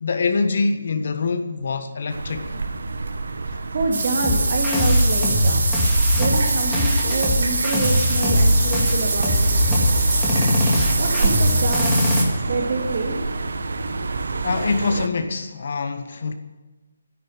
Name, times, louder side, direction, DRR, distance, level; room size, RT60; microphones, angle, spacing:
voice 1, 0.0-2.6 14.4-16.3, left 4 dB, 50° left, 8 dB, 1.5 m, -24 dB
sound 1, 2.1-15.1, right 3 dB, 75° right, 1.4 m, -28 dB
voice 2, 3.5-5.6 6.1-9.5 10.9-12.0 12.5-13.2, right 3 dB, 40° right, 2 dB, 2.6 m, -27 dB
sound 2, 3.9-12.2, right 3 dB, 60° right, 4.1 m, -25 dB
sound 3, 4.2-12.2, left 1 dB, 5° left, 2.3 m, -21 dB
13.5 x 10.5 x 9.9 m, 1.2 s
hypercardioid pair, 175°, 0 cm